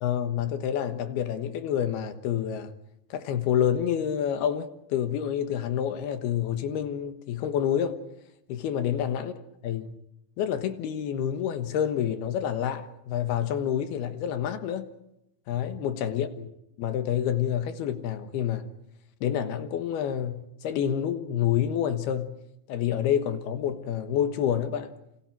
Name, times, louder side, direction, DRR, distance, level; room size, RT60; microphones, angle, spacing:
voice 1, 0.0-2.7 3.1-8.0 8.5-9.3 9.6-9.9 10.4-14.9 15.5-16.5 16.8-18.7 19.2-22.4 22.7-24.9, left 9 dB, 75° left, 3.3 m, -28 dB
29.0 x 27.0 x 4.6 m
omnidirectional pair, 4.6 m